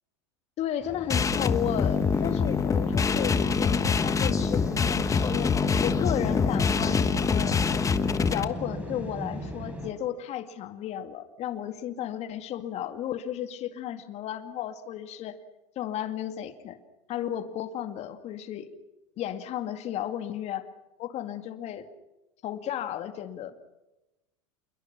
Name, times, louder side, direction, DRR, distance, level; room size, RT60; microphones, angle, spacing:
voice 1, 0.6-5.5 5.8-7.6 8.2-15.4 15.8-16.8 17.1-18.7 19.2-20.7 21.0-21.9 22.4-23.6, left 10 dB, 45° left, 8 dB, 2.2 m, -34 dB
sound 1, 0.8-9.9, equal, 10° right, 6.1 m, -38 dB
sound 2, 1.1-8.4, left 5 dB, 20° left, 1.3 m, -25 dB
28.0 x 21.5 x 5.9 m, 1.0 s
hypercardioid pair, 100°, 15 cm